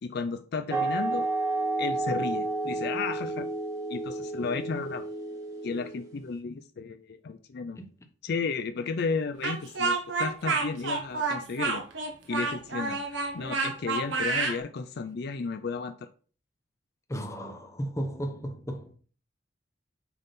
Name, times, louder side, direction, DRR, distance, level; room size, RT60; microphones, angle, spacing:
voice 1, 0.0-1.3 1.8-3.5 3.9-5.1 5.6-7.8 8.2-11.8 12.3-16.1, left 4 dB, 60° left, 0.4 m, -33 dB
sound 1, 0.7-6.1, right 2 dB, 20° right, 1.5 m, -31 dB
Speech, 9.4-14.6, right 4 dB, 80° right, 1.3 m, -29 dB
voice 2, 17.1-18.9, equal, 15° left, 0.9 m, -34 dB
6.9 x 3.6 x 4.1 m
head